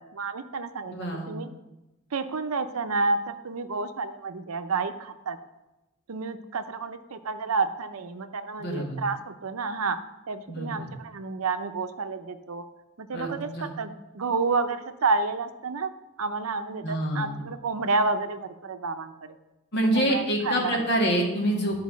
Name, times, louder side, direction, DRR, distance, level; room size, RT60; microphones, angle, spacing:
voice 1, 0.0-1.5 2.1-5.4 6.1-10.0 10.3-12.6 13.0-15.9 16.2-19.3 19.9-20.8, right 4 dB, 85° right, 9 dB, 0.7 m, -30 dB
voice 2, 0.9-1.4 8.6-9.0 10.5-10.9 13.1-13.7 16.8-17.4 19.7-21.8, right 1 dB, 55° left, -1 dB, 2.0 m, -27 dB
10.5 x 4.8 x 6.2 m, 1.0 s
head